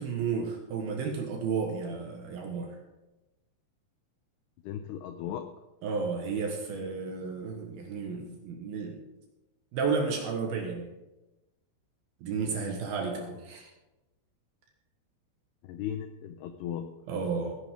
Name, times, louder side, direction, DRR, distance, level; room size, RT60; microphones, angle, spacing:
voice 1, 0.0-2.7 5.8-9.0 9.7-10.9 12.2-13.7 17.1-17.6, right 5 dB, 65° right, 2 dB, 2.7 m, -32 dB
voice 2, 4.6-5.5 15.6-16.9, left 10 dB, 90° left, 8 dB, 2.3 m, -36 dB
17.0 x 10.5 x 3.7 m, 1.0 s
omnidirectional pair, 5.6 m